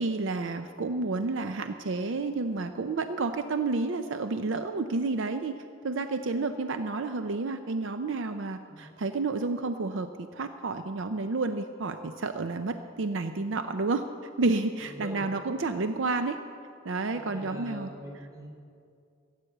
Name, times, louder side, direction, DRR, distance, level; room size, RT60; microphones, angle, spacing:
voice 1, 0.0-5.6 5.8-14.0 14.4-16.4 16.8-18.3, right 3 dB, 70° right, 9 dB, 0.5 m, -30 dB
voice 2, 14.8-15.7 17.1-18.5, equal, 15° right, -2 dB, 3.2 m, -42 dB
14.5 x 8.3 x 7.9 m, 2.3 s
head